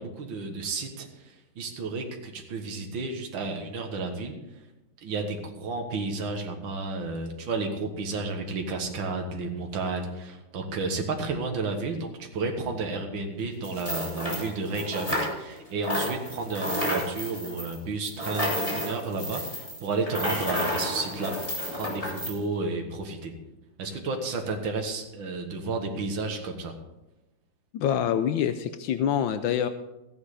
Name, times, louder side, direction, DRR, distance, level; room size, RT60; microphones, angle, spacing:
voice 1, 0.0-4.3 5.0-23.3 23.8-26.7, right 3 dB, 80° right, 3 dB, 2.2 m, -32 dB
sound 1, 13.6-15.6 15.8-22.4, left 1 dB, 15° left, 3.1 m, -31 dB
voice 2, 27.7-29.7, left 9 dB, 80° left, 10 dB, 1.4 m, -26 dB
15.0 x 10.0 x 5.0 m, 0.98 s
omnidirectional pair, 2.1 m